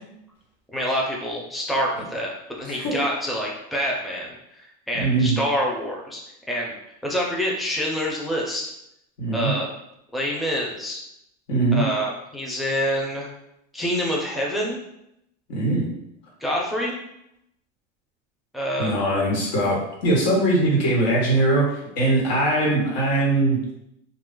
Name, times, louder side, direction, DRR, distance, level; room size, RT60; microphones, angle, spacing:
voice 1, 0.7-6.2 6.5-6.7 7.0-8.7 9.3-9.7 10.1-11.0 11.7-13.3 13.7-14.8 16.4-17.0 18.5-19.0, equal, ahead, -3 dB, 0.4 m, -26 dB
voice 2, 4.9-5.4 9.2-9.5 11.5-11.8 15.5-15.9 18.8-21.6 21.9-23.6, right 2 dB, 90° left, -4 dB, 1.5 m, -21 dB
2.8 x 2.4 x 3.6 m, 0.80 s
cardioid pair, 145°, 21 cm